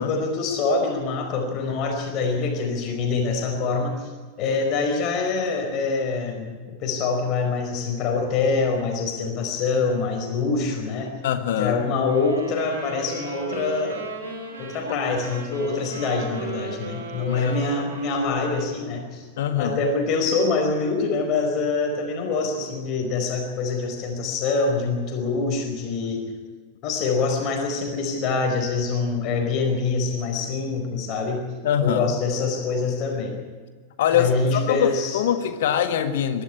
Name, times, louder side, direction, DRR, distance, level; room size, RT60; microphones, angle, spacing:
voice 1, 0.0-4.1 4.4-11.1 11.5-14.0 14.6-19.3 19.6-26.2 26.8-31.5 31.8-33.4 34.1-35.2, left 4 dB, 40° left, 3 dB, 4.8 m, -25 dB
voice 2, 11.2-11.9 17.3-17.5 19.4-19.8 31.6-32.1 34.0-36.4, left 9 dB, 55° left, 9 dB, 1.7 m, -23 dB
sound 1, 12.1-18.9, right 3 dB, 70° right, 5.5 m, -36 dB
23.0 x 13.0 x 9.9 m, 1.5 s
figure-of-eight pair, 90°, 0 cm